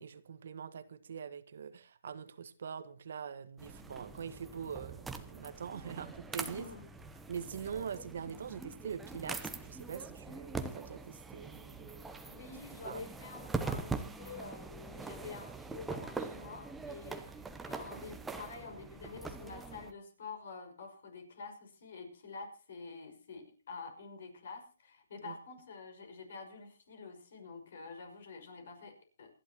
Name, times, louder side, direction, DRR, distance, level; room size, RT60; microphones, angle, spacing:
voice 1, 0.0-6.6 7.3-12.3 12.8-13.1 25.2-25.4, right 7 dB, 55° right, 1.4 m, -43 dB
sound 1, 3.6-19.9, right 4 dB, 5° right, 0.9 m, -43 dB
voice 2, 6.4-6.9 12.2-29.3, left 4 dB, 50° left, 5.8 m, -48 dB
28.0 x 11.0 x 3.0 m
hypercardioid pair, 165°, 0 cm